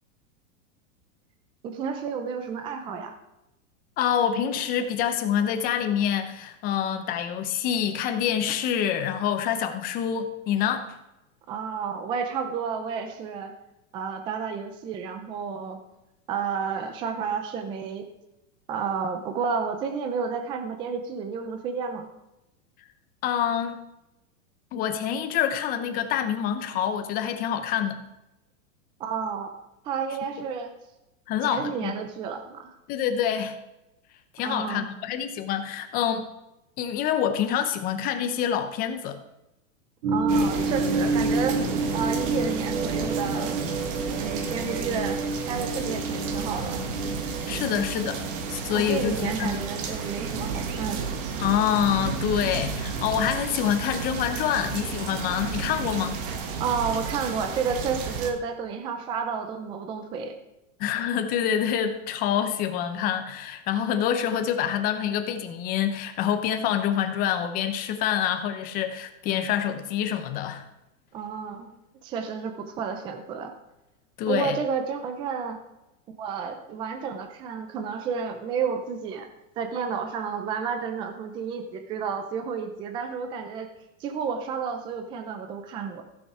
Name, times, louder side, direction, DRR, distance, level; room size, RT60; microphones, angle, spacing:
voice 1, 1.6-3.1 11.5-13.5 13.9-15.8 16.3-18.1 18.7-22.1 29.0-29.5 29.8-30.7 31.5-32.7 34.4-34.9 40.1-43.6 44.2-46.8 48.7-51.1 56.6-60.3 71.1-71.7 72.0-73.5 74.3-75.6 76.2-79.3 79.6-83.7 84.0-86.0, right 6 dB, 10° right, 7 dB, 0.5 m, -31 dB
voice 2, 4.0-10.9 23.2-23.8 24.7-28.0 31.3-32.0 32.9-33.6 34.3-36.3 36.8-39.2 47.5-48.2 48.5-49.5 51.4-56.2 60.8-70.6 74.2-74.6, left 9 dB, 20° left, 8 dB, 0.7 m, -26 dB
sound 1, 40.0-50.6, right 2 dB, 65° right, 2.3 m, -30 dB
sound 2, 40.3-58.3, right 5 dB, 40° right, 1.4 m, -32 dB
15.0 x 7.0 x 4.8 m, 0.92 s
supercardioid pair, 165°, 40 cm